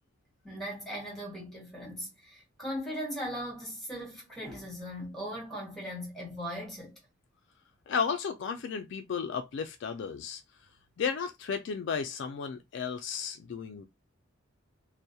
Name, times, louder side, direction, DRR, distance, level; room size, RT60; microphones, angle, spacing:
voice 1, 0.4-7.0, equal, ahead, 1.1 m, -39 dB
voice 2, 7.9-10.4 11.0-13.8, left 6 dB, 60° left, 0.3 m, -33 dB
2.2 x 2.0 x 2.7 m
head